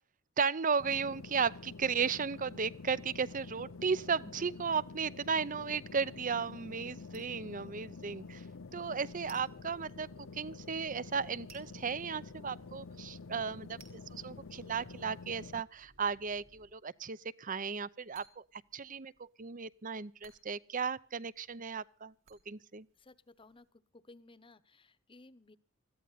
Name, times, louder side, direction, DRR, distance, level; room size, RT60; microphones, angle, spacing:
voice 1, 0.4-8.4 8.7-22.1 22.5-22.9, right 5 dB, 40° right, 0.7 m, -35 dB
sound 1, 0.8-15.6, left 4 dB, 80° left, 0.7 m, -48 dB
sound 2, 4.3-23.7, right 5 dB, 80° right, 4.2 m, -67 dB
sound 3, 9.0-16.7, equal, 60° right, 4.9 m, -65 dB
voice 2, 23.0-23.7 23.9-25.6, left 2 dB, 25° left, 1.0 m, -58 dB
20.5 x 15.0 x 4.1 m
head